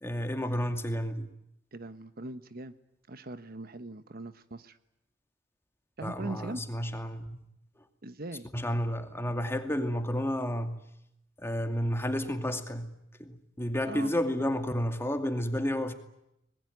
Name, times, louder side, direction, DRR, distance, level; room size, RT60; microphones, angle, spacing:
voice 1, 0.0-1.3 6.0-7.5 8.5-10.8 11.4-12.9 13.2-15.9, equal, 15° left, 2.4 m, -31 dB
voice 2, 1.7-2.7 3.1-4.8 6.0-6.6 8.0-8.5 13.9-14.1, right 2 dB, 55° right, 1.1 m, -40 dB
25.5 x 21.0 x 9.3 m
head